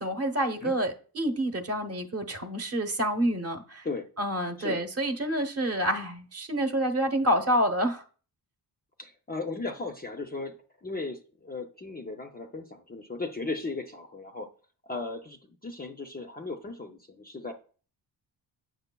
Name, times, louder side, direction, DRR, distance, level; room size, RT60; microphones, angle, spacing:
voice 1, 0.0-3.8 4.2-8.0, right 1 dB, 35° right, 0.9 m, -28 dB
voice 2, 9.0-10.5 10.8-14.5 14.8-17.5, left 3 dB, 25° left, 0.5 m, -36 dB
8.0 x 6.1 x 2.2 m
cardioid pair, 130°, 42 cm